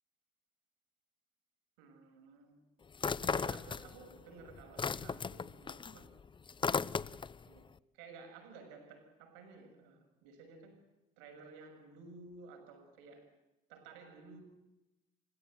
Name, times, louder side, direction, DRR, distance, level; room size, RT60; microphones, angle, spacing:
voice 1, 1.8-2.6 3.2-6.2 6.8-7.1 7.5-7.7 7.9-10.8 11.2-13.4 13.7-14.4, right 4 dB, 80° right, 7.1 m, -54 dB
sound 1, 2.9-4.2 4.5-7.4, left 5 dB, 25° left, 0.9 m, -36 dB
29.5 x 16.5 x 7.8 m
hypercardioid pair, 70°, 19 cm